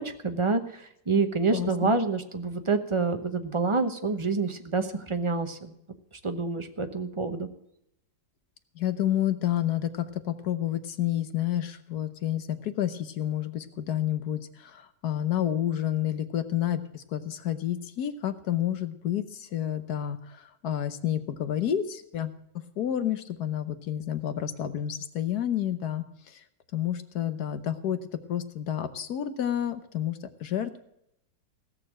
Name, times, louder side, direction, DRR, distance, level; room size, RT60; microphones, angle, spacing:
voice 1, 0.0-5.7 6.2-7.5, right 4 dB, 25° right, 7 dB, 0.8 m, -27 dB
voice 2, 1.5-1.9 8.7-22.3 22.8-26.4 26.7-30.8, left 11 dB, 70° left, 11 dB, 1.4 m, -30 dB
16.5 x 6.7 x 7.4 m, 0.78 s
omnidirectional pair, 1.8 m